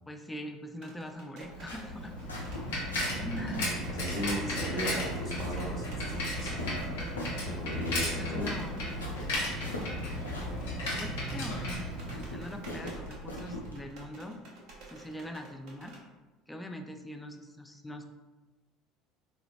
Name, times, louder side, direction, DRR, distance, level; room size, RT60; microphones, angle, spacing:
voice 1, 0.1-2.1 3.4-3.8 4.4-5.2 8.2-8.8 11.0-11.8 12.1-14.4 14.9-15.9 16.5-18.1, equal, 10° left, 5 dB, 0.3 m, -42 dB
sound 1, 0.7-16.0, right 2 dB, 55° right, 0.6 m, -52 dB
sound 2, 1.5-13.7, left 1 dB, 80° left, 0.5 m, -43 dB
Bicycle, 1.7-12.6, left 1 dB, 65° left, 0.8 m, -35 dB
voice 2, 3.0-8.5, equal, 30° left, -7 dB, 0.9 m, -37 dB
3.8 x 2.0 x 2.5 m, 1.2 s
figure-of-eight pair, 65°, 0 cm